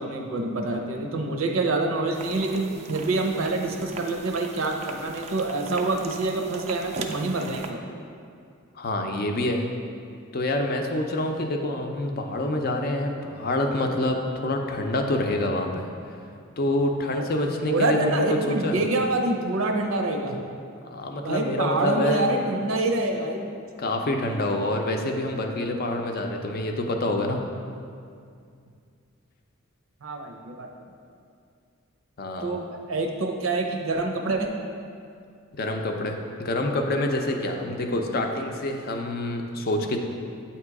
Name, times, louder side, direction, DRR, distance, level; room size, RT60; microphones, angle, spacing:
voice 1, 0.0-7.8 17.1-17.3 17.7-20.4 21.2-23.5 30.0-30.7 32.4-34.5, right 2 dB, 75° right, 2 dB, 0.6 m, -26 dB
sound 1, 2.1-7.7, right 4 dB, 30° right, 0.3 m, -40 dB
voice 2, 8.8-9.7 10.3-15.9 16.6-18.8 20.8-22.3 23.8-27.4 32.2-32.6 35.6-40.0, left 1 dB, 45° left, 3 dB, 0.5 m, -27 dB
8.1 x 2.9 x 4.7 m, 2.3 s
head